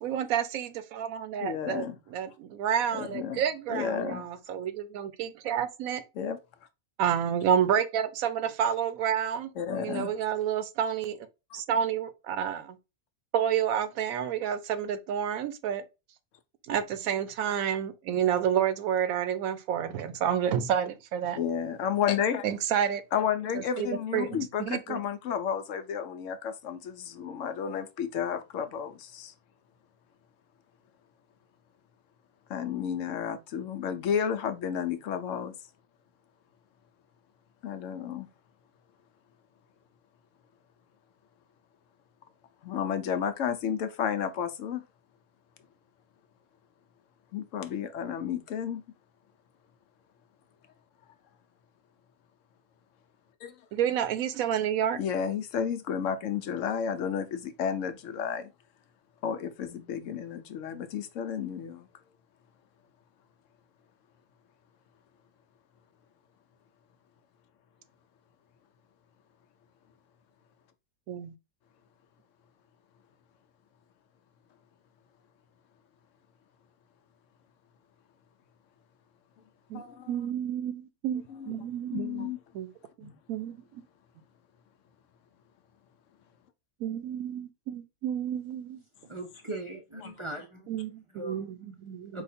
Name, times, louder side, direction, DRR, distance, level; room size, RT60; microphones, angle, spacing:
voice 1, 0.0-6.0 7.0-11.2 11.5-12.8 13.3-15.8 16.7-21.4 22.4-23.0 23.5-23.9 24.1-25.0 53.7-55.0 71.1-71.3 79.7-79.8 80.1-82.7 83.0-83.8 86.8-88.8 90.7-92.2, right 9 dB, 85° right, 1.0 m, -30 dB
voice 2, 1.4-2.0 2.9-3.4 3.7-4.3 6.2-6.4 9.6-10.1 21.4-22.5 23.1-29.3 32.5-35.5 37.6-38.3 42.6-44.8 47.3-48.8 53.4-53.5 55.0-58.5 59.2-61.9 79.7-80.1 81.3-81.5 81.9-82.4 83.0-83.1, left 8 dB, 70° left, 0.9 m, -32 dB
voice 3, 89.0-90.8 91.1-91.5 92.1-92.2, right 1 dB, 40° right, 0.4 m, -39 dB
4.9 x 2.3 x 4.1 m
omnidirectional pair, 1.5 m